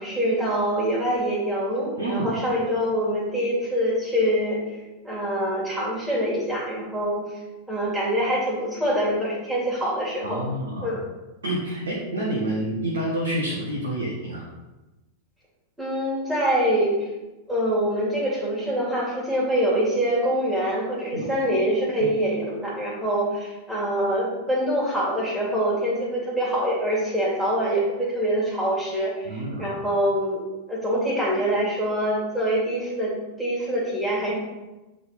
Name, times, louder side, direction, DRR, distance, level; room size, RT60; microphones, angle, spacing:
voice 1, 0.0-4.6 5.0-7.2 7.7-10.4 10.8-11.0 15.8-17.1 17.5-30.4 30.7-34.3, equal, 5° right, -8 dB, 2.2 m, -25 dB
voice 2, 2.0-2.4 10.2-10.9 11.4-14.5 21.1-21.3 22.0-22.1 29.2-29.7, right 1 dB, 70° right, -4 dB, 1.2 m, -28 dB
7.6 x 3.7 x 4.0 m, 1.1 s
figure-of-eight pair, 90°, 0 cm